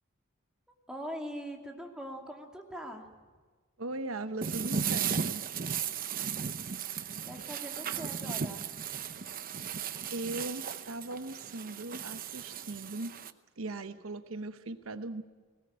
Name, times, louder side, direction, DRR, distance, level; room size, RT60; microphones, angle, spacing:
voice 1, 0.9-3.1 7.3-8.7, equal, 5° right, 1 dB, 2.5 m, -42 dB
voice 2, 3.8-5.4 10.1-13.1 13.6-15.2, right 2 dB, 80° right, 10 dB, 1.0 m, -39 dB
sound 1, 4.4-13.3, right 7 dB, 45° right, 0.8 m, -36 dB
20.5 x 18.0 x 8.8 m, 1.4 s
head